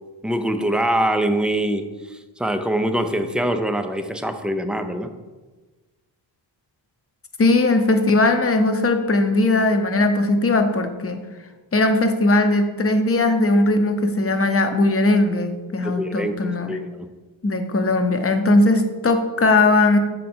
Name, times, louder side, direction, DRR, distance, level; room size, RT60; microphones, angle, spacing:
voice 1, 0.2-5.1 15.8-17.1, right 1 dB, ahead, 7 dB, 0.3 m, -24 dB
voice 2, 7.4-11.2 11.7-16.8 17.4-20.0, left 2 dB, 30° left, 7 dB, 0.7 m, -19 dB
6.6 x 3.6 x 4.3 m, 1.3 s
cardioid pair, 85°, 48 cm